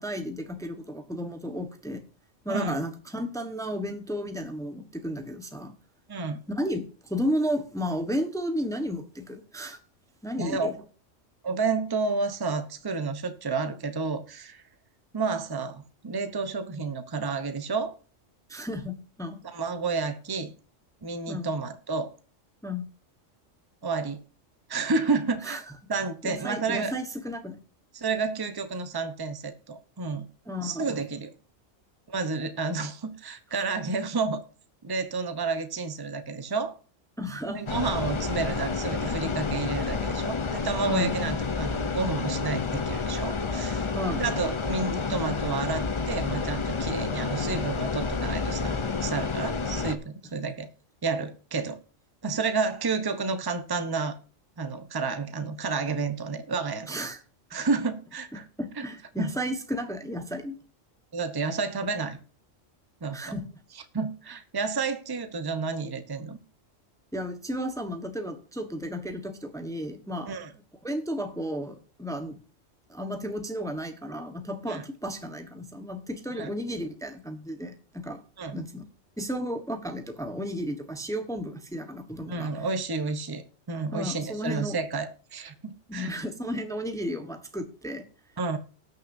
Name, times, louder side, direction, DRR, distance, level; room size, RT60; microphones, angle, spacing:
voice 1, 0.0-2.0 2.4-5.7 6.5-9.8 10.2-10.7 18.5-19.4 21.3-21.5 22.6-22.8 25.4-25.6 26.2-27.6 30.5-30.8 37.2-37.6 40.9-41.1 43.9-44.2 56.9-57.2 58.3-60.6 63.1-63.4 67.1-70.3 70.8-72.4 72.9-78.2 78.5-78.8 79.2-82.5 83.9-84.8 85.9-88.0, equal, 5° left, 7 dB, 1.1 m, -33 dB
voice 2, 2.5-2.8 6.1-6.4 10.4-10.8 11.4-14.6 15.1-17.9 19.4-20.5 21.0-22.1 23.8-24.2 24.7-25.6 25.9-26.9 27.9-30.3 30.6-31.3 32.1-34.4 34.8-36.8 37.5-50.7 51.0-51.8 52.2-54.1 54.6-56.9 57.5-58.4 58.8-58.9 59.2-59.3 61.1-62.2 63.0-63.3 63.9-66.4 70.3-70.5 74.7-74.8 76.3-76.5 78.4-78.6 82.3-86.1 88.4-88.6, right 4 dB, 20° right, 9 dB, 0.8 m, -30 dB
sound 1, 37.7-50.0, left 4 dB, 30° left, 0.6 m, -30 dB
18.5 x 6.6 x 2.7 m, 0.39 s
omnidirectional pair, 1.3 m